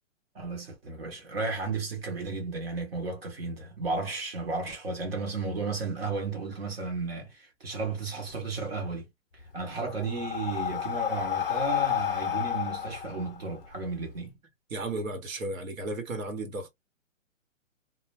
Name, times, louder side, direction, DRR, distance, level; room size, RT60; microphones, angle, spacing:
voice 1, 0.3-9.1 9.5-14.4, right 3 dB, 50° right, 1.0 m, -33 dB
Breathing, 9.4-14.1, left 10 dB, 45° left, 0.5 m, -31 dB
voice 2, 14.7-16.7, right 2 dB, 85° right, 1.1 m, -34 dB
2.2 x 2.1 x 3.0 m
hypercardioid pair, 175°, 40 cm